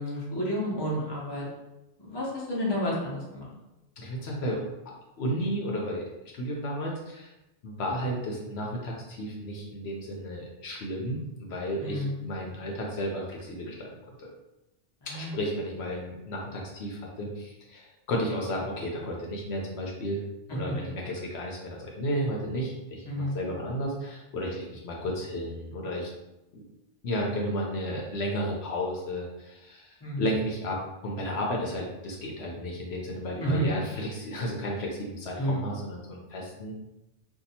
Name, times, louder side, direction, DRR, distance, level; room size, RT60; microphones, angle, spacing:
voice 1, 0.0-1.4 2.0-3.5 11.8-12.2 15.0-15.4 23.1-23.4 30.0-30.2 33.4-33.7 35.4-35.7, equal, 25° left, -5 dB, 0.8 m, -30 dB
voice 2, 4.0-4.6 5.2-6.1 6.3-7.3 7.6-13.9 14.2-14.3 15.1-20.2 20.5-26.1 26.5-26.6 27.0-36.7, equal, 70° left, -2 dB, 0.9 m, -33 dB
2.7 x 2.3 x 4.1 m, 0.96 s
omnidirectional pair, 1.2 m